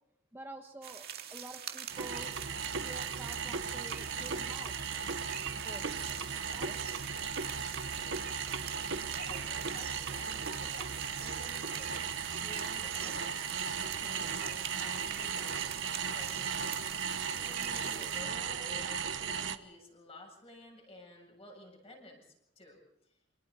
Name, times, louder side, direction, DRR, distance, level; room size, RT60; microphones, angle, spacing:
voice 1, 0.3-2.4 2.8-4.8 5.5-6.2 6.5-6.8, right 1 dB, 10° right, 4 dB, 1.1 m, -49 dB
sound 1, 0.8-18.2, right 9 dB, 55° right, 2.1 m, -45 dB
sound 2, 1.9-19.6, right 6 dB, 80° right, 1.2 m, -36 dB
voice 2, 9.0-15.7 16.1-22.8, left 1 dB, 30° left, 0 dB, 7.8 m, -52 dB
28.0 x 27.0 x 4.2 m, 0.80 s
head